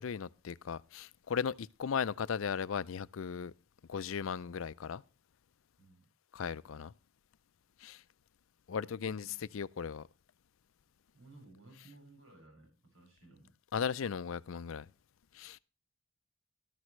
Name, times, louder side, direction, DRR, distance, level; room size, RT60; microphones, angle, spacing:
voice 1, 0.0-3.5 3.9-5.0 6.3-6.9 7.8-8.0 8.7-10.1 13.7-14.9 15.3-15.6, left 6 dB, 70° left, 0.5 m, -37 dB
voice 2, 5.8-6.1 8.8-9.4 11.1-13.5, right 2 dB, 70° right, 6.4 m, -58 dB
13.0 x 12.5 x 3.2 m
head